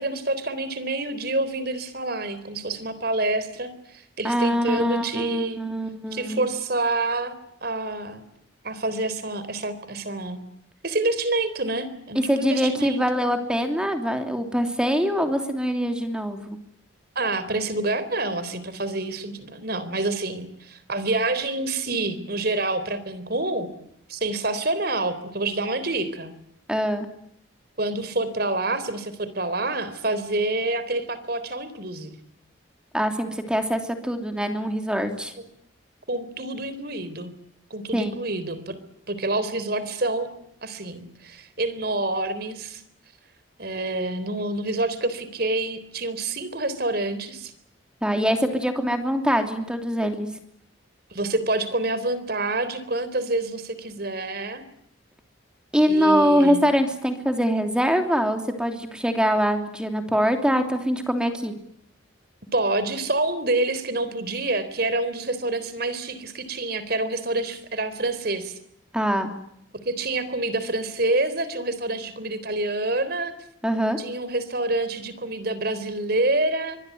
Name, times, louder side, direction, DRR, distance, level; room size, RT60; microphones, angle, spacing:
voice 1, 0.0-5.6 6.1-7.3 7.6-8.2 8.6-10.4 10.8-13.0 17.2-23.7 24.1-26.3 27.8-32.2 36.1-37.3 37.7-38.8 39.1-40.3 40.6-42.8 43.6-47.5 51.1-54.6 55.9-56.6 62.5-68.6 69.9-73.3 74.0-76.8, right 2 dB, 50° right, 14 dB, 3.7 m, -27 dB
voice 2, 4.2-6.5 12.1-16.6 26.7-27.1 32.9-35.3 37.9-38.1 48.0-50.3 55.7-61.5 68.9-69.3 73.6-74.0, equal, 5° right, 6 dB, 3.0 m, -23 dB
24.5 x 21.0 x 9.4 m, 0.73 s
head